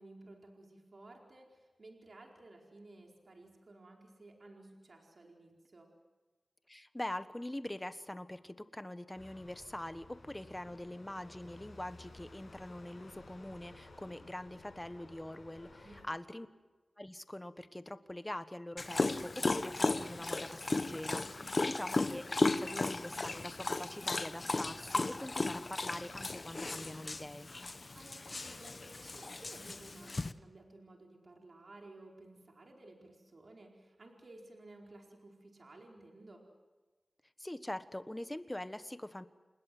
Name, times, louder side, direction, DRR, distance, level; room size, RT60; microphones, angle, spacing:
voice 1, 0.0-5.9 10.7-10.8 15.8-16.2 21.4-21.7 27.9-36.5, right 2 dB, 60° right, 1 dB, 4.6 m, -56 dB
voice 2, 6.7-16.5 17.0-27.5 37.4-39.3, left 1 dB, 15° left, 12 dB, 1.3 m, -44 dB
sound 1, 9.1-16.0, left 2 dB, 65° left, 7.9 m, -55 dB
Dog, 18.8-30.3, left 3 dB, 45° left, 1.0 m, -35 dB
29.0 x 20.5 x 7.8 m, 1.2 s
wide cardioid pair, 65°, 0 cm